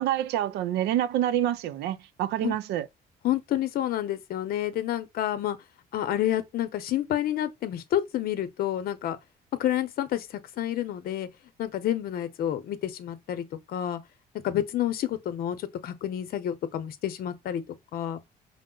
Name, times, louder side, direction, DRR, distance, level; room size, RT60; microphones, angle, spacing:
voice 1, 0.0-2.9, right 12 dB, 80° right, 0.5 m, -27 dB
voice 2, 3.2-5.6 5.9-9.2 9.6-11.3 11.6-14.0 14.4-17.6 17.9-18.2, left 11 dB, 60° left, 0.8 m, -29 dB
5.2 x 2.1 x 3.8 m
cardioid pair, 110°, 17 cm